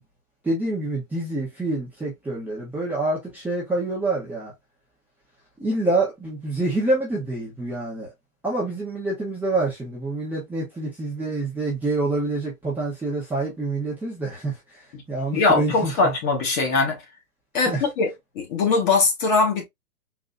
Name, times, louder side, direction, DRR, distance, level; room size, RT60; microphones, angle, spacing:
voice 1, 0.4-4.5 5.6-8.1 8.4-14.5 15.1-16.1 17.7-17.8, right 2 dB, 5° right, 0.9 m, -26 dB
voice 2, 15.3-17.0 17.5-19.6, left 4 dB, 30° left, 1.4 m, -21 dB
4.0 x 2.9 x 2.4 m
hypercardioid pair, 130°, 45 cm